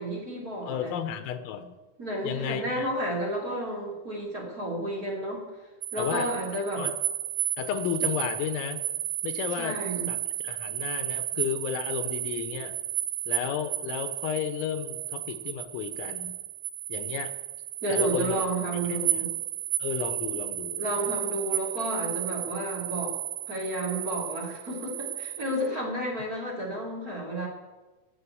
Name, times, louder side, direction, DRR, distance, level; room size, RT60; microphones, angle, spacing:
voice 1, 0.0-0.9 2.0-5.5 5.9-6.8 9.6-10.1 17.8-19.3 20.8-23.1 23.5-27.5, right 1 dB, 20° right, -2 dB, 2.8 m, -31 dB
voice 2, 0.7-1.7 2.2-2.9 6.0-6.3 6.8-6.9 7.6-8.8 9.2-9.8 10.1-10.2 10.4-12.8 13.3-16.4 16.9-17.3 17.9-18.5 18.9-19.3 19.8-21.1, left 9 dB, 85° left, 10 dB, 3.7 m, -33 dB
sound 1, 5.8-25.7, right 13 dB, 85° right, 3.6 m, -33 dB
18.0 x 7.8 x 8.5 m, 1.2 s
omnidirectional pair, 5.8 m